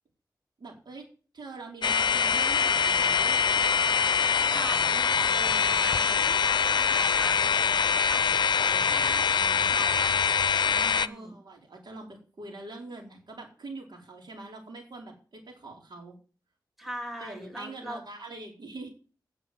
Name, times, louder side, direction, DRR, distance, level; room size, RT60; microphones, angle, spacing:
voice 1, 0.6-1.1 1.3-3.6 11.1-16.2 17.2-18.9, right 2 dB, 75° right, 0 dB, 4.6 m, -43 dB
sound 1, 1.8-11.1, left 6 dB, 75° left, 0.6 m, -24 dB
voice 2, 4.5-10.1 10.7-11.4 16.8-18.0, equal, 5° right, 3 dB, 2.5 m, -41 dB
9.6 x 8.0 x 7.9 m, 0.38 s
wide cardioid pair, 85°, 8 cm